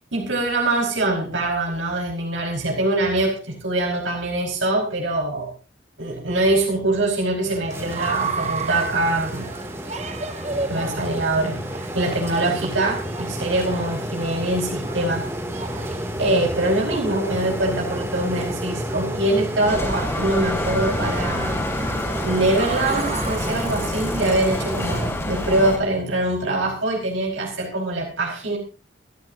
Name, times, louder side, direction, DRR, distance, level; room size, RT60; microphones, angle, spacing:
voice 1, 0.1-5.5 6.0-9.5 9.8-10.0 10.7-11.6 11.9-15.3 16.2-21.6 22.2-28.6, right 2 dB, 90° right, -1 dB, 5.0 m, -23 dB
sound 1, 7.4-24.5, right 4 dB, 35° right, 1.3 m, -35 dB
sound 2, 7.7-25.1, equal, 15° right, 2.7 m, -31 dB
Bicycle, 19.7-25.8, left 1 dB, 15° left, 3.3 m, -27 dB
28.5 x 10.5 x 2.8 m, 0.33 s
head